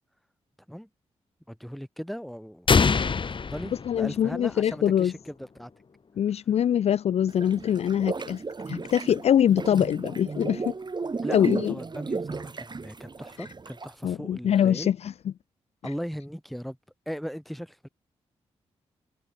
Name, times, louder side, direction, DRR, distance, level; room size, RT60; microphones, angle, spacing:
voice 1, 1.5-2.8 3.4-5.7 11.2-14.9 15.8-16.8 17.1-17.9, equal, ahead, 5.5 m, -38 dB
sound 1, 2.7-4.6, left 5 dB, 45° left, 0.9 m, -24 dB
voice 2, 3.9-5.1 6.2-8.4 8.7-10.7 11.3-11.7 14.0-15.1, left 9 dB, 60° left, 0.4 m, -23 dB
sound 2, 7.3-14.0, right 4 dB, 35° right, 1.4 m, -34 dB
supercardioid pair, 50°, 12 cm